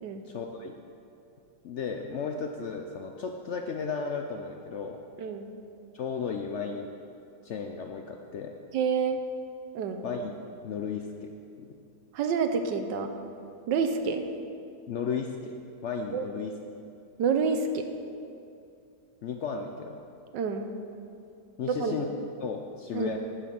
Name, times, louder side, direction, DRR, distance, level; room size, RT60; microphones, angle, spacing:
voice 1, 0.3-0.8 1.6-5.0 5.9-6.9 7.4-8.6 10.0-11.3 11.6-11.7 14.9-15.6 15.8-16.5 19.2-20.0 21.6-22.1 22.4-23.2, left 5 dB, 80° left, 3 dB, 0.6 m, -34 dB
voice 2, 8.7-9.2 9.7-10.0 12.1-13.1 13.7-14.2 16.1-16.2 17.2-17.9 20.3-20.7 21.7-22.0 22.9-23.1, right 5 dB, 85° right, 6 dB, 1.4 m, -28 dB
9.9 x 7.4 x 5.9 m, 2.5 s
omnidirectional pair, 1.9 m